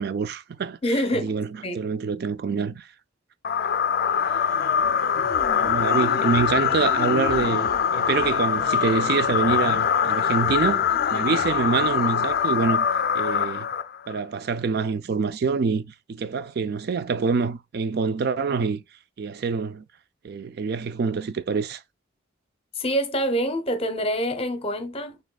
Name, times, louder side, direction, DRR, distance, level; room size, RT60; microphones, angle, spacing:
voice 1, 0.0-0.8 1.1-1.5 1.7-2.9 4.3-4.4 5.2-5.3 5.6-10.8 11.1-12.9 13.1-13.7 14.1-18.8 19.2-19.8 20.2-21.8, right 5 dB, 55° right, 0.4 m, -26 dB
voice 2, 0.8-1.4 1.6-1.8 22.8-25.2, equal, 30° left, 0.8 m, -26 dB
sound 1, 3.4-14.2, left 7 dB, 50° left, 0.4 m, -23 dB
6.3 x 3.5 x 2.3 m
head